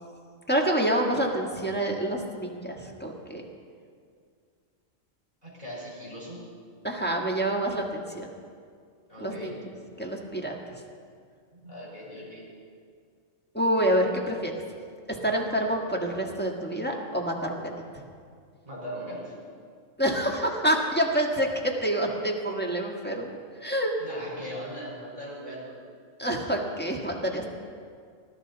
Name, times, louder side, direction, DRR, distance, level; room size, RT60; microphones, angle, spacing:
voice 1, 0.5-3.4 6.8-8.3 9.2-9.5 10.0-10.5 13.5-14.5 15.1-18.0 20.0-23.3 23.6-23.9 26.2-27.4, right 1 dB, 10° left, -1 dB, 1.5 m, -27 dB
voice 2, 5.4-6.4 9.1-9.6 11.5-12.5 18.6-19.3 24.0-25.8, equal, 35° right, -5 dB, 5.0 m, -39 dB
20.0 x 11.5 x 4.0 m, 2.2 s
omnidirectional pair, 1.3 m